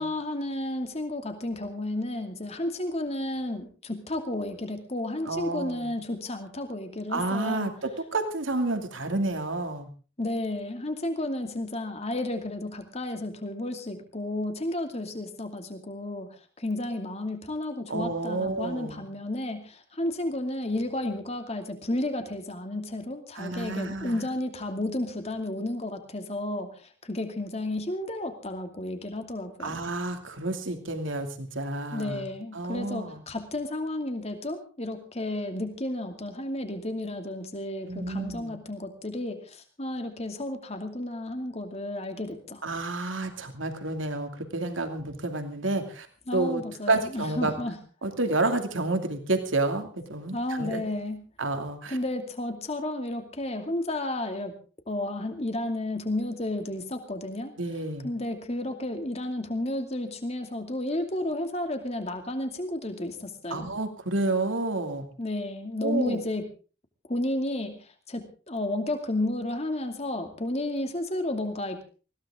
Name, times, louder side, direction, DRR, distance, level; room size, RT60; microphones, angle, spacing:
voice 1, 0.0-7.7 10.2-29.8 31.9-42.6 46.3-47.7 50.3-51.2 51.9-54.5 54.9-57.5 58.0-63.7 65.2-66.4 67.1-71.8, left 1 dB, 30° left, 6 dB, 2.5 m, -32 dB
voice 2, 5.3-5.9 7.1-9.9 17.9-19.1 23.3-24.3 29.6-32.3 32.5-33.2 37.9-38.6 42.6-46.1 46.3-47.5 48.0-50.9 51.4-52.0 57.6-58.1 63.5-65.1 65.8-66.2, right 2 dB, 70° right, 6 dB, 2.6 m, -30 dB
20.0 x 16.5 x 3.7 m, 0.37 s
head